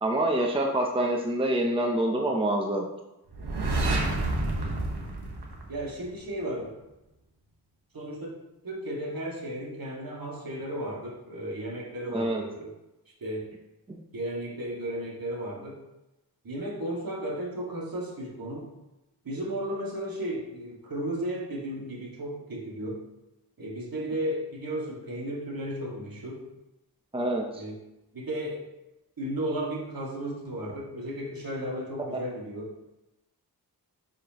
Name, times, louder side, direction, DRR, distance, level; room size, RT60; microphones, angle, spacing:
voice 1, 0.0-2.9 12.1-12.4 13.9-14.0 27.1-27.4, right 1 dB, 15° right, 1 dB, 0.8 m, -26 dB
sound 1, 3.3-6.2, right 2 dB, 85° right, 1.4 m, -29 dB
voice 2, 3.9-4.2 4.6-4.8 5.7-6.8 7.9-8.4 8.6-12.7 13.2-13.5 14.1-15.8 16.4-18.7 19.2-23.1 23.6-26.5 27.5-27.8 28.1-28.6 29.2-32.7, right 1 dB, 60° right, -3 dB, 2.2 m, -34 dB
10.0 x 4.9 x 3.1 m, 0.97 s
wide cardioid pair, 85°, 38 cm